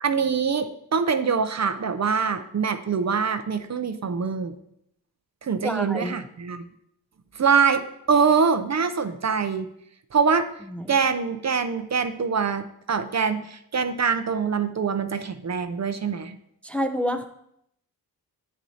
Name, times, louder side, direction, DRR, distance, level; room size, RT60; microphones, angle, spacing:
voice 1, 0.0-4.5 5.4-6.6 7.3-9.7 10.1-10.5 10.9-16.3, right 6 dB, 45° right, 9 dB, 0.5 m, -24 dB
voice 2, 5.6-6.1 10.7-11.0 16.6-17.2, equal, 5° left, 6 dB, 0.5 m, -28 dB
9.1 x 8.1 x 2.8 m, 0.75 s
wide cardioid pair, 100°, 39 cm